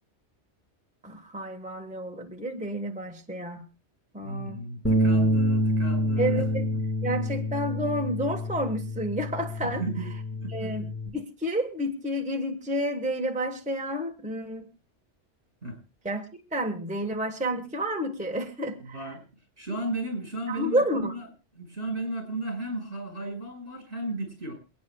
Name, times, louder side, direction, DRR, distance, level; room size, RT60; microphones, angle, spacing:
voice 1, 1.0-3.6 4.1-4.6 6.2-6.7 7.0-9.8 10.5-14.7 16.0-16.2 16.5-19.1 20.5-21.1, equal, 5° right, 3 dB, 1.2 m, -30 dB
voice 2, 4.2-6.8 9.6-10.1 10.4-10.9 15.6-15.8 18.8-19.2 19.6-21.3 21.6-24.5, right 1 dB, 60° right, 4 dB, 5.8 m, -34 dB
Bass guitar, 4.8-11.1, equal, 10° left, 1.8 m, -27 dB
28.0 x 9.4 x 2.3 m, 0.29 s
omnidirectional pair, 1.2 m